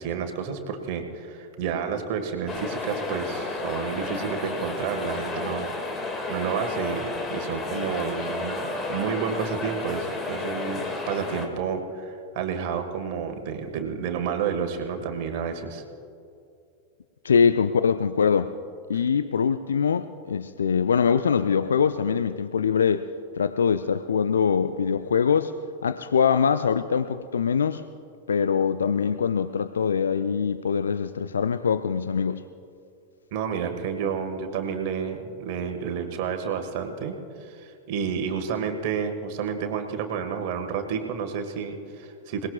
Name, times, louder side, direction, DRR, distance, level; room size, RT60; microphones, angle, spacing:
voice 1, 0.0-15.8 33.3-42.5, right 6 dB, 45° right, 6 dB, 1.6 m, -30 dB
sound 1, 2.5-11.5, left 3 dB, 20° left, 2.0 m, -32 dB
voice 2, 17.2-18.5 18.9-23.1 23.3-25.5 25.8-27.9 28.3-32.4, left 6 dB, 70° left, 11 dB, 0.4 m, -23 dB
27.5 x 19.0 x 2.4 m, 2.5 s
figure-of-eight pair, 90°, 0 cm